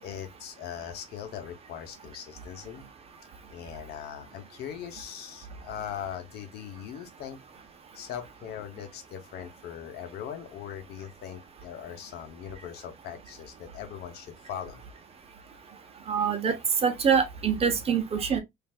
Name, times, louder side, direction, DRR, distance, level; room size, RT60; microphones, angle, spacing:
voice 1, 0.0-2.9 3.5-7.4 7.9-14.8, left 9 dB, 70° left, 0.9 m, -40 dB
voice 2, 16.1-16.6 16.8-18.4, right 6 dB, 35° right, 0.8 m, -25 dB
3.3 x 2.5 x 2.4 m
cardioid pair, 110°, 17 cm